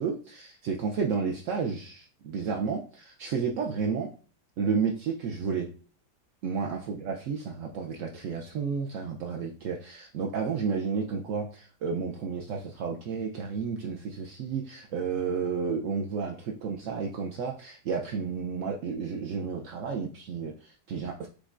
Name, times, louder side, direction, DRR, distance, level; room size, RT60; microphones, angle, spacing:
voice 1, 0.0-4.1 4.6-5.7 6.4-21.3, right 5 dB, 70° right, 1 dB, 0.7 m, -31 dB
5.2 x 3.6 x 2.4 m, 0.39 s
omnidirectional pair, 1.8 m